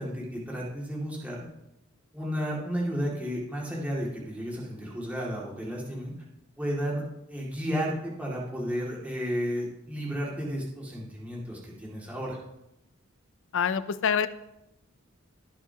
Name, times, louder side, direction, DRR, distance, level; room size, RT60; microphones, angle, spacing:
voice 1, 0.0-1.4 2.1-6.1 6.6-7.0 7.3-12.4, equal, 5° right, -5 dB, 2.3 m, -32 dB
voice 2, 13.5-14.3, left 7 dB, 65° left, 13 dB, 0.5 m, -25 dB
18.5 x 7.1 x 2.9 m, 0.88 s
head